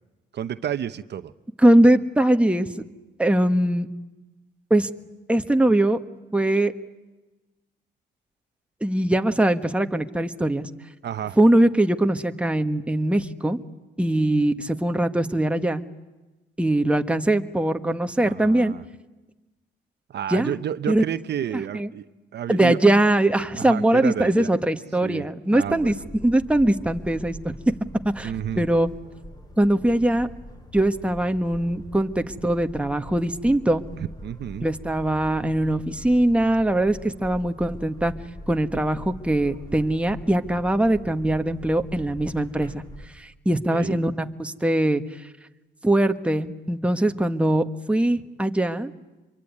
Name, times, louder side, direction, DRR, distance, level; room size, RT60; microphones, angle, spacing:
voice 1, 0.3-1.3 11.0-11.4 18.2-18.8 20.1-22.0 22.3-22.8 23.6-24.5 25.0-25.3 25.5-25.9 28.2-28.7 34.0-34.7 43.7-44.0, right 10 dB, 60° right, 12 dB, 0.9 m, -30 dB
voice 2, 1.6-2.7 3.2-3.9 4.7-4.9 5.3-6.0 6.3-6.7 8.8-10.7 11.4-13.6 14.0-15.8 16.6-18.7 20.3-20.6 20.9-21.0 21.5-21.9 22.5-25.9 26.2-27.5 28.1-28.9 29.6-30.3 30.7-33.8 34.6-38.1 38.5-42.8 43.1-45.0 45.8-48.9, right 1 dB, 5° right, 7 dB, 1.4 m, -21 dB
sound 1, 25.6-43.1, equal, 20° left, 4.1 m, -42 dB
25.5 x 23.5 x 9.7 m, 1.1 s
cardioid pair, 90°, 20 cm